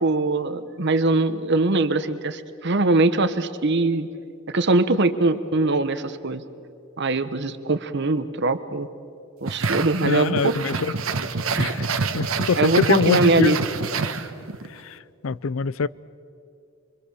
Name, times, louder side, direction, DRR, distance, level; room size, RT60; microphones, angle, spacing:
voice 1, 0.0-4.1 4.5-6.4 7.0-8.9 9.4-10.5 11.5-11.7 12.6-13.6, right 2 dB, 55° right, 12 dB, 1.1 m, -22 dB
sound 1, 9.5-14.7, right 4 dB, 85° right, 1.2 m, -27 dB
voice 2, 10.0-11.0 11.6-11.9 12.1-13.6 14.7-15.0 15.2-15.9, left 5 dB, 75° left, 19 dB, 0.5 m, -24 dB
25.0 x 24.5 x 7.0 m, 2.5 s
head